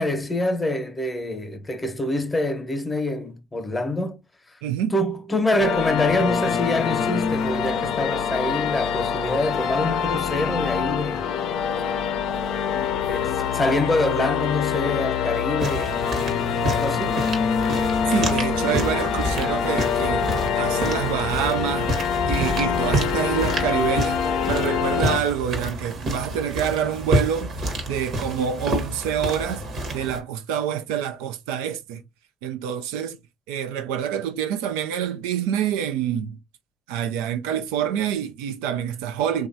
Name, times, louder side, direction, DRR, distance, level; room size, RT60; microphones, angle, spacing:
voice 1, 0.0-4.2 4.5-4.6 4.9-11.3 13.1-16.1 16.6-17.2, left 1 dB, 20° left, 0.8 m, -25 dB
voice 2, 4.6-5.0 18.1-22.0 22.3-27.6 27.9-29.6 29.9-32.0 32.4-33.2 33.5-36.4 36.9-39.5, right 9 dB, 85° right, 0.3 m, -26 dB
sound 1, 5.6-25.2, left 7 dB, 70° left, 0.4 m, -25 dB
sound 2, 15.6-30.2, right 1 dB, 55° right, 1.0 m, -29 dB
3.1 x 2.3 x 2.6 m
hypercardioid pair, 65°, 0 cm